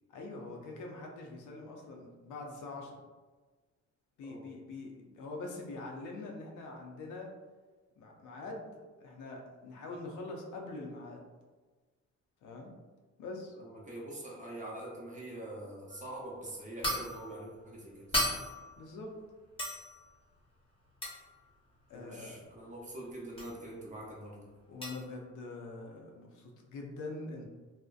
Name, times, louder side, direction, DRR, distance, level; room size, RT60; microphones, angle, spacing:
voice 1, 0.1-3.0 4.2-7.3 8.0-11.3 12.4-12.8 13.2-13.6 18.8-19.1 21.9-22.4 24.7-27.5, left 2 dB, 75° left, 1 dB, 0.6 m, -44 dB
voice 2, 13.6-18.3 21.9-24.5, right 1 dB, 25° right, -3 dB, 0.7 m, -44 dB
sound 1, 15.9-16.1 16.8-17.3 18.1-18.7 19.6-20.0 21.0-21.3 23.4-23.6 24.8-25.1, left 1 dB, 20° left, 0.9 m, -34 dB
2.6 x 2.0 x 2.4 m, 1.3 s
cardioid pair, 90°, 30 cm